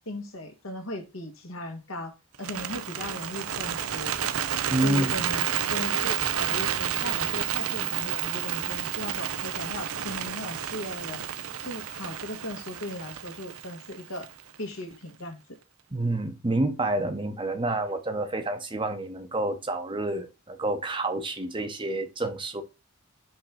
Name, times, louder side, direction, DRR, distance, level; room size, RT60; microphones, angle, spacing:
voice 1, 0.0-4.2 4.8-11.2 11.6-14.3 14.6-15.4, left 1 dB, 70° left, 1.7 m, -37 dB
Bird, 2.3-14.5, right 10 dB, 85° right, 0.6 m, -30 dB
voice 2, 4.7-5.1 15.9-22.6, right 2 dB, 20° right, 0.8 m, -28 dB
5.4 x 3.7 x 5.7 m
head